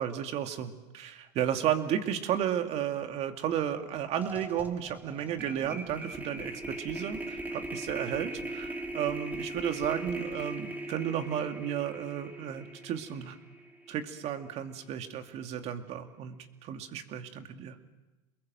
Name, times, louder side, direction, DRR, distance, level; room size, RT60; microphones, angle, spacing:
voice 1, 0.0-13.4 13.9-17.8, right 9 dB, 45° right, 6 dB, 2.5 m, -33 dB
sound 1, 3.6-3.8 4.1-14.4, right 1 dB, 10° right, 3.1 m, -40 dB
29.0 x 21.5 x 7.8 m, 1.1 s
hypercardioid pair, 105°, 15 cm